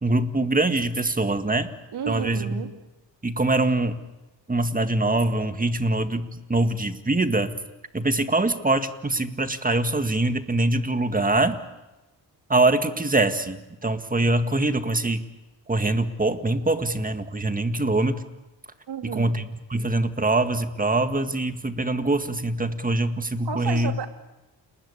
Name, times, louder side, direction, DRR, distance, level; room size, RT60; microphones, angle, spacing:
voice 1, 0.0-1.7 2.1-2.6 3.2-4.0 4.5-7.6 7.9-11.6 12.5-15.2 15.7-18.2 19.0-23.9, right 2 dB, 20° right, 9 dB, 1.9 m, -23 dB
voice 2, 1.9-2.7 18.9-19.3 23.4-24.1, right 7 dB, 65° right, 6 dB, 2.6 m, -31 dB
29.5 x 20.5 x 8.5 m, 1.0 s
cardioid pair, 85°, 43 cm